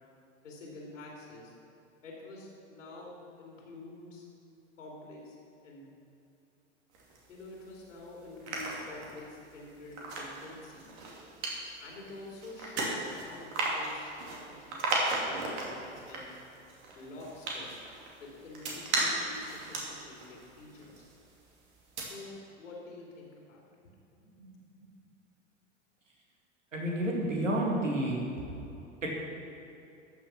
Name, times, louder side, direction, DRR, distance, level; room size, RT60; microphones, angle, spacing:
voice 1, 0.4-1.5 2.0-4.2 4.8-5.4 5.6-5.8 7.3-10.9 11.8-16.3 16.9-17.7 18.2-21.1 22.0-22.3 22.6-23.6 24.2-24.9, left 2 dB, 80° left, -2 dB, 3.0 m, -48 dB
sound 1, 6.9-7.8 8.2-21.4 21.8-22.0, right 2 dB, 65° right, 2.9 m, -36 dB
voice 2, 26.7-28.5 29.0-29.1, right 1 dB, 85° right, -2 dB, 2.4 m, -30 dB
13.5 x 7.0 x 5.9 m, 2.8 s
hypercardioid pair, 85°, 37 cm